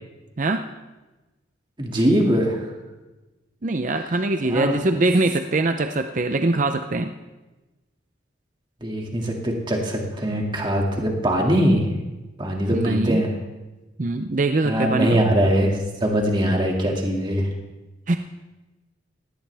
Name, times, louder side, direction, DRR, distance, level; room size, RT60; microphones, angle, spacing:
voice 1, 1.8-2.6 4.5-4.8 8.8-11.9 12.4-13.3 14.6-17.5, equal, 25° right, 0 dB, 2.2 m, -22 dB
voice 2, 3.6-7.1 12.7-13.2 14.0-15.2 18.1-18.2, right 2 dB, 40° right, 7 dB, 0.6 m, -22 dB
18.5 x 16.5 x 3.5 m, 1.1 s
head